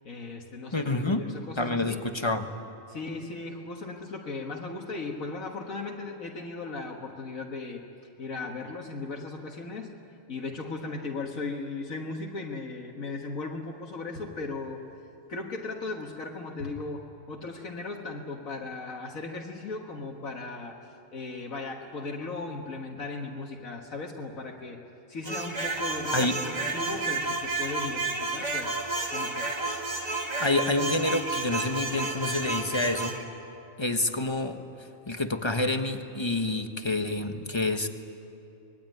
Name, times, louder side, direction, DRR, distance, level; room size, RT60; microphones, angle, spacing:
voice 1, 0.0-2.0 2.9-7.8 8.2-9.9 10.3-14.8 15.3-24.8 25.1-28.8 29.1-29.5, left 3 dB, 80° left, 0 dB, 2.0 m, -37 dB
voice 2, 0.7-2.5 26.1-26.4 30.4-33.2 33.8-37.9, left 2 dB, 20° left, 6 dB, 1.3 m, -28 dB
sound 1, 25.2-33.2, right 3 dB, 30° right, 2.1 m, -31 dB
25.0 x 21.5 x 9.3 m, 2.7 s
omnidirectional pair, 1.4 m